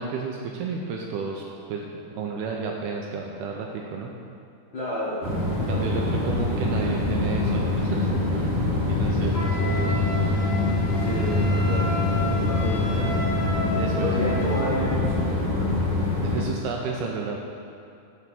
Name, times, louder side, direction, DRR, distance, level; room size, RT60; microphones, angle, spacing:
voice 1, 0.0-1.9 2.1-4.1 5.7-8.5 8.8-9.9 12.7-12.9 13.8-14.1 16.2-17.4, right 5 dB, 80° right, 0 dB, 2.3 m, -32 dB
voice 2, 4.7-5.3 5.7-6.0 10.9-12.0 12.3-13.1 14.0-15.7, left 1 dB, 80° left, -10 dB, 1.1 m, -31 dB
sound 1, 5.2-16.4, left 2 dB, 40° right, 0.8 m, -24 dB
Wind instrument woodwind instrument, 9.3-14.8, equal, 50° left, 1.2 m, -33 dB
8.0 x 4.7 x 7.1 m, 2.6 s
omnidirectional pair, 5.0 m